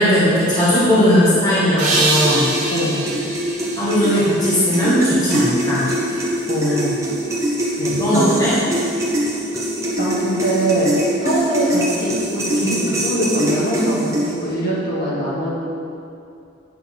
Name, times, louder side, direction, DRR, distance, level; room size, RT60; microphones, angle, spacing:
voice 1, 0.0-2.5 3.8-6.2 6.7-6.8 8.0-8.5, equal, 20° left, -10 dB, 1.6 m, -17 dB
sound 1, 1.8-4.9, right 2 dB, 35° right, 1.1 m, -24 dB
sound 2, 1.9-14.5, right 1 dB, 15° right, 1.1 m, -23 dB
voice 2, 2.7-3.0 6.5-6.9 7.7-8.2 10.0-10.9 11.2-15.5, right 1 dB, 45° left, -7 dB, 1.9 m, -22 dB
9.0 x 4.3 x 5.8 m, 2.5 s
head